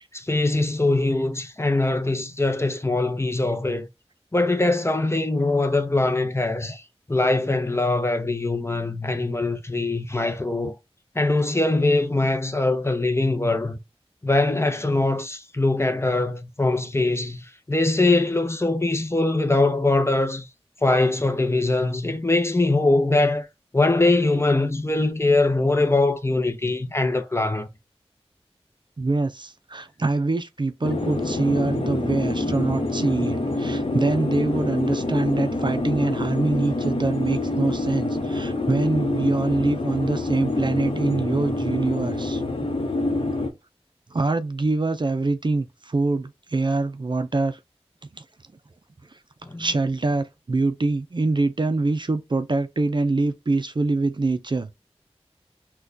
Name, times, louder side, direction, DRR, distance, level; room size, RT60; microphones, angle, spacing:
voice 1, 0.1-3.9 4.3-6.8 7.1-10.8 11.2-13.8 14.2-20.5 20.8-23.5 23.7-27.7 49.4-49.7, left 2 dB, 25° left, 0.6 m, -22 dB
voice 2, 29.0-42.4 44.1-47.6 48.2-48.3 49.6-54.7, right 3 dB, 45° right, 0.4 m, -24 dB
sound 1, 30.8-43.5, left 2 dB, 55° left, 0.9 m, -26 dB
6.1 x 2.3 x 2.6 m
wide cardioid pair, 45°, 11 cm